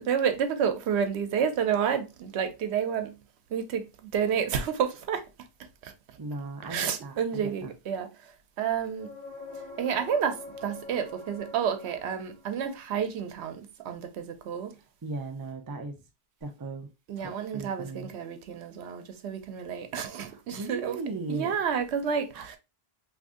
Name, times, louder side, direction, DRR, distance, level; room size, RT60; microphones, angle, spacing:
voice 1, 0.1-3.2 3.5-5.2 5.8-5.9 6.7-8.1 8.6-9.1 9.8-14.7 17.1-21.0 21.3-22.6, right 7 dB, 85° right, 0.9 m, -30 dB
voice 2, 6.2-7.7 14.7-16.0 16.4-16.9 17.2-18.1 20.2-21.5 22.3-22.5, right 3 dB, 30° right, 0.4 m, -38 dB
sound 1, 9.0-12.7 16.4-16.5, left 3 dB, 50° left, 1.6 m, -44 dB
2.9 x 2.6 x 3.5 m
omnidirectional pair, 1.1 m